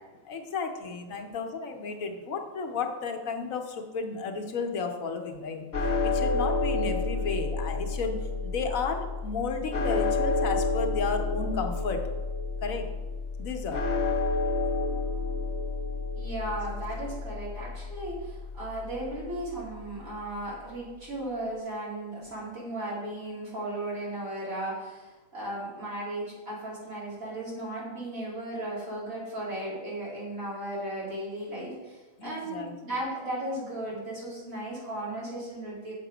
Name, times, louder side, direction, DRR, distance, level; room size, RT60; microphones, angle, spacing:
voice 1, 0.2-5.6 6.0-8.2 8.4-12.0 12.6-12.9 13.4-13.8 32.2-32.9, left 4 dB, 80° left, 4 dB, 1.3 m, -33 dB
sound 1, 5.7-20.0, left 3 dB, 50° left, 1.3 m, -30 dB
voice 2, 16.1-35.9, right 1 dB, 75° right, -7 dB, 3.6 m, -36 dB
7.3 x 6.8 x 5.0 m, 1.2 s
omnidirectional pair, 1.4 m